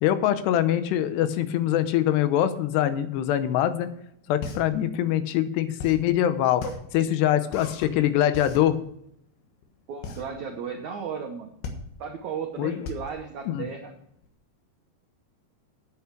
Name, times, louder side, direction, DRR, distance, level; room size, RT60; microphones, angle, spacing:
voice 1, 0.0-3.9 4.3-6.6 6.9-8.8 12.6-12.8 13.5-13.7, left 11 dB, 90° left, 11 dB, 2.9 m, -23 dB
sound 1, 4.1-14.3, left 4 dB, 70° left, 3.2 m, -38 dB
voice 2, 9.9-11.5 12.0-13.9, right 6 dB, 85° right, 3 dB, 1.7 m, -35 dB
9.4 x 8.5 x 6.6 m, 0.73 s
omnidirectional pair, 4.9 m